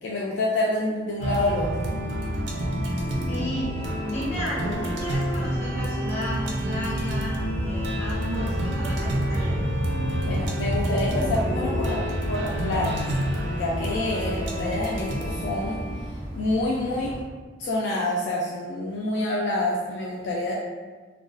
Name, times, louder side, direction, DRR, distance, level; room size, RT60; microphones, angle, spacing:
voice 1, 0.0-1.8 10.2-13.1 13.5-17.1 17.6-20.5, left 1 dB, 75° left, -4 dB, 0.3 m, -27 dB
sound 1, 1.2-16.5, equal, 85° right, 0.4 m, -28 dB
Bowed string instrument, 2.5-16.8, equal, 50° right, 1.1 m, -44 dB
voice 2, 3.3-9.6, left 1 dB, 35° left, -9 dB, 1.1 m, -33 dB
sound 2, 5.2-17.2, equal, 10° right, 0.4 m, -41 dB
2.2 x 2.2 x 2.5 m, 1.4 s
head